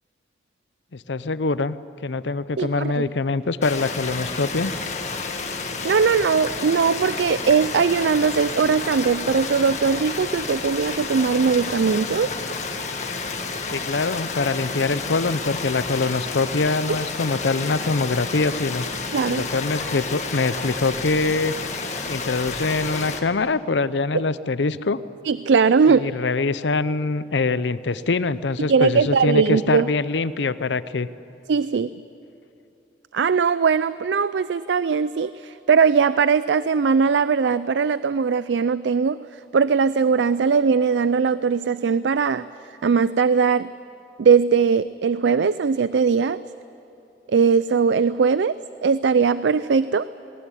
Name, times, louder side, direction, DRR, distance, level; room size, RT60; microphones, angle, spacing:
voice 1, 0.9-1.8 2.0-4.7 13.7-19.0 19.3-21.5 22.1-25.0 25.9-31.1, left 3 dB, 90° left, 15 dB, 0.7 m, -24 dB
voice 2, 2.6-3.0 5.6-12.3 19.1-19.5 25.2-26.1 28.7-29.9 31.5-31.9 33.1-39.2 39.5-42.4 42.8-43.7 44.2-46.4 47.3-48.6 48.8-50.1, right 5 dB, 85° right, 15 dB, 0.4 m, -20 dB
sound 1, 3.6-23.2, left 4 dB, 40° left, 1.7 m, -30 dB
19.5 x 19.5 x 9.8 m, 2.9 s
head